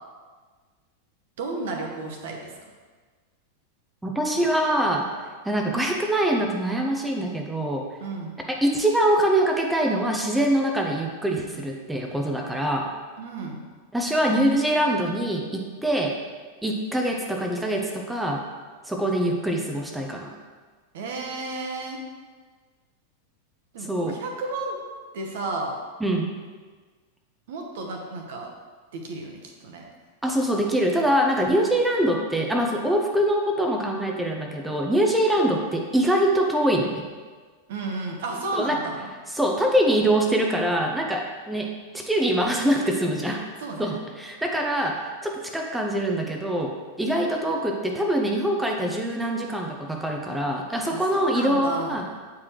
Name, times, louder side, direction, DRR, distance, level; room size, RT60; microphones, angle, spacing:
voice 1, 1.4-2.5 8.0-8.3 13.2-13.6 20.9-22.0 23.7-24.8 25.1-25.8 27.5-28.5 28.9-29.8 37.7-39.1 43.6-44.0 50.9-52.0, right 3 dB, 55° right, 2 dB, 1.0 m, -32 dB
voice 2, 4.0-5.1 5.4-7.8 8.5-12.9 13.9-16.2 16.6-18.4 18.9-20.3 23.8-24.2 26.0-26.3 30.2-37.1 38.5-38.8 39.3-43.5 43.8-52.0, right 1 dB, 5° right, 0 dB, 0.7 m, -24 dB
8.3 x 4.8 x 3.1 m, 1.4 s
figure-of-eight pair, 90°, 0 cm